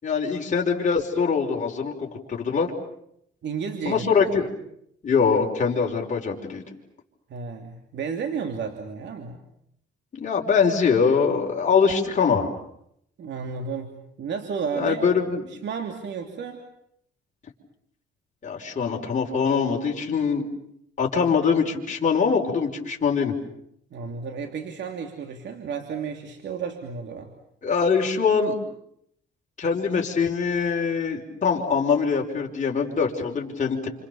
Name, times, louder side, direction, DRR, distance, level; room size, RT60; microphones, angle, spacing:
voice 1, 0.0-2.7 3.9-4.5 5.0-6.6 10.1-12.5 14.8-15.4 18.4-20.5 21.0-23.3 27.6-28.6 29.6-33.9, left 5 dB, 40° left, -1 dB, 5.2 m, -23 dB
voice 2, 3.4-4.3 7.3-9.4 13.2-13.9 14.2-15.1 15.5-16.6 23.9-27.3, right 6 dB, 65° right, 5 dB, 3.0 m, -32 dB
28.5 x 28.0 x 7.1 m, 0.74 s
cardioid pair, 90°, 20 cm